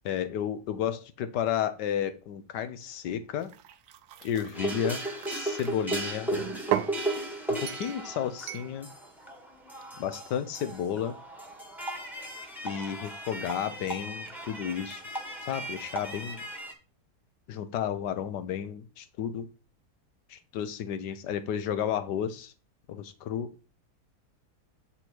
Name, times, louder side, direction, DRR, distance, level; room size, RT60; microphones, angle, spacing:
voice 1, 0.0-3.5 4.2-6.3 7.5-8.9 10.0-11.2 12.6-15.0 15.5-16.4 17.5-19.5 20.3-22.5 22.9-23.5, left 9 dB, 85° left, 1.4 m, -32 dB
sound 1, 3.4-5.7 6.3-7.0 7.7-8.0 8.5-8.7, right 12 dB, 75° right, 1.1 m, -35 dB
sound 2, 4.5-16.7, right 1 dB, ahead, 1.0 m, -36 dB
8.1 x 4.2 x 4.5 m
omnidirectional pair, 1.8 m